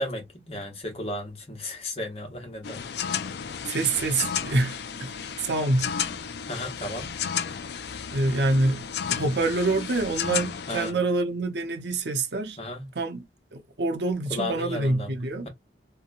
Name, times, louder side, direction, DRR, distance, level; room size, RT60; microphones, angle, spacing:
voice 1, 0.0-2.8 3.1-3.3 6.5-7.2 10.7-11.0 12.6-12.9 14.3-15.1, left 1 dB, 35° left, 0.9 m, -34 dB
sound 1, 2.6-10.9, left 8 dB, 65° left, 0.3 m, -33 dB
voice 2, 3.7-5.1 5.4-5.9 8.1-12.6 13.0-13.2 13.5-15.5, right 2 dB, 75° right, 0.6 m, -26 dB
2.8 x 2.1 x 2.4 m
head